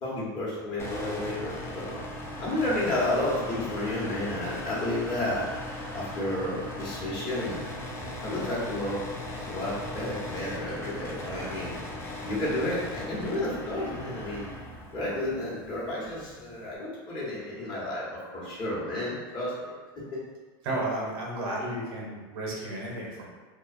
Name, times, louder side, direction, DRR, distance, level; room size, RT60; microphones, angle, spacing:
voice 1, 0.0-2.0 2.4-5.5 5.9-7.7 8.2-9.0 9.3-11.7 12.2-14.5 14.9-19.7 20.1-20.2, left 1 dB, 40° left, -7 dB, 1.0 m, -31 dB
sound 1, 0.8-16.8, left 1 dB, 20° left, 0.4 m, -39 dB
voice 2, 20.6-23.3, right 1 dB, 70° right, -3 dB, 0.8 m, -33 dB
2.3 x 2.2 x 2.5 m, 1.3 s
supercardioid pair, 120°, 13 cm